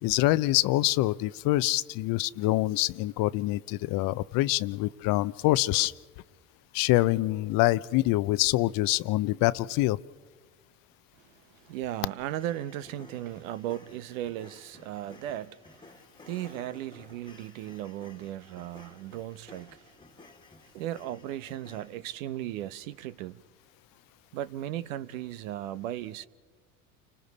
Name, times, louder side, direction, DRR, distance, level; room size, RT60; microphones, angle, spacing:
voice 1, 0.0-5.9 6.7-10.0, left 18 dB, 55° left, 0.7 m, -25 dB
voice 2, 11.2-19.9 20.7-23.4 24.3-26.3, right 12 dB, 70° right, 0.9 m, -37 dB
sound 1, 12.4-21.9, left 2 dB, 10° left, 1.7 m, -54 dB
29.5 x 26.0 x 4.1 m
hypercardioid pair, 75°, 41 cm